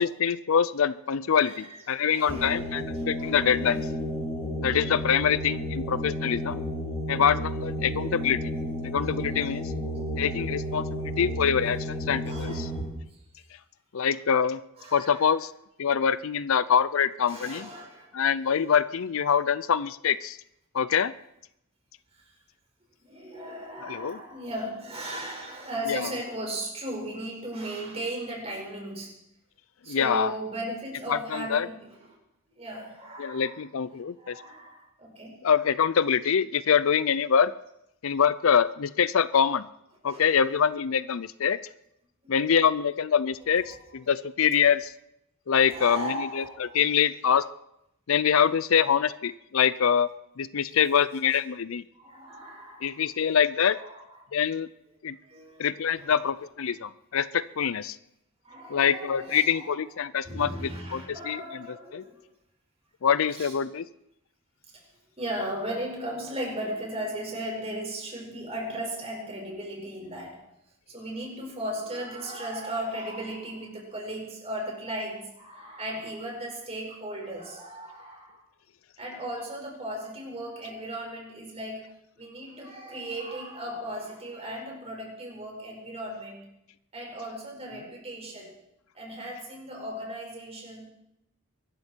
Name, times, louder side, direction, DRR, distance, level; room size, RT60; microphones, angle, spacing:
voice 1, 0.0-3.9 4.6-6.6 7.1-8.4 8.8-9.7 10.2-12.7 13.9-14.6 14.9-15.5 15.8-17.7 18.1-20.4 20.7-21.1 23.8-24.2 25.9-26.0 29.9-30.3 31.1-31.7 33.2-34.4 35.4-37.5 38.0-39.7 40.0-41.6 42.3-44.9 45.5-47.5 48.1-50.1 50.4-51.8 52.8-53.8 54.3-54.7 55.0-55.2 55.6-58.0 58.7-61.7 61.9-62.0 63.0-63.8, left 7 dB, 65° left, 17 dB, 0.5 m, -25 dB
voice 2, 1.4-1.8 2.1-2.6 2.9-3.9 9.9-10.0 12.2-12.7 13.1-13.2 14.8-15.3 17.2-18.2 22.1-22.3 23.0-29.2 29.8-32.0 32.5-33.5 34.2-35.4 40.1-40.4 42.2-42.3 43.7-43.8 45.6-46.8 51.9-53.1 53.6-54.0 55.2-56.2 58.4-59.7 60.2-62.2 63.3-63.5 64.7-64.9 65.2-70.4 70.9-78.4 79.0-86.5 86.9-88.5 88.9-90.8, right 1 dB, 30° right, -1 dB, 5.4 m, -37 dB
sound 1, 2.3-12.8, equal, 10° left, 5.0 m, -32 dB
23.5 x 13.0 x 4.5 m, 0.81 s
head